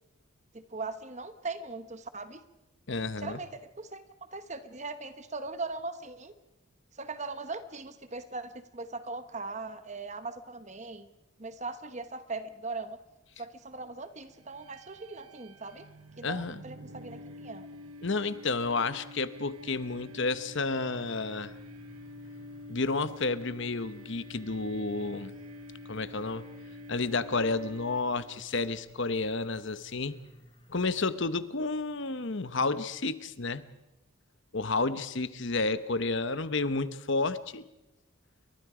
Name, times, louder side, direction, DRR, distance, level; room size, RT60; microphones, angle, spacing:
voice 1, 0.5-2.4 3.2-4.0 4.3-6.3 7.0-11.1 11.4-13.0 13.4-15.8 16.2-17.7, right 3 dB, 30° right, 10 dB, 1.1 m, -39 dB
voice 2, 2.9-3.4 16.2-16.6 18.0-21.5 22.7-25.3 25.9-26.5 26.9-30.1 30.7-33.6 34.5-37.7, left 3 dB, 55° left, 13 dB, 1.0 m, -31 dB
sound 1, 14.4-28.4, left 1 dB, 90° right, 1.2 m, -48 dB
sound 2, 20.9-31.1, equal, 25° left, 1.8 m, -55 dB
29.5 x 23.0 x 5.0 m, 0.94 s
head